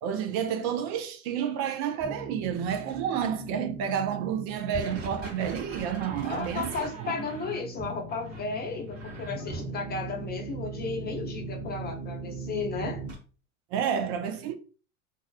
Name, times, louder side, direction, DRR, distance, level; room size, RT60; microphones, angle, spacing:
voice 1, 0.0-7.2 13.7-14.5, right 8 dB, 55° right, 0.5 m, -30 dB
sound 1, 2.0-13.1, right 3 dB, 35° right, 1.2 m, -39 dB
voice 2, 6.2-13.0, left 4 dB, 25° left, 0.7 m, -34 dB
2.3 x 2.1 x 2.6 m
hypercardioid pair, 85°, 39 cm